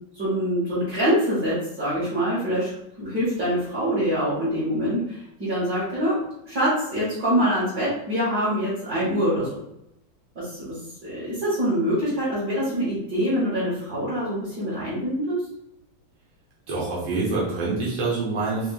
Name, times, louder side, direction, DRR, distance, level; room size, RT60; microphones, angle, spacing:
voice 1, 0.1-6.2 6.5-9.6 10.4-15.4, equal, 50° right, -11 dB, 1.9 m, -25 dB
voice 2, 16.7-18.7, right 3 dB, 90° right, -7 dB, 2.0 m, -26 dB
5.0 x 3.1 x 2.3 m, 0.82 s
omnidirectional pair, 2.2 m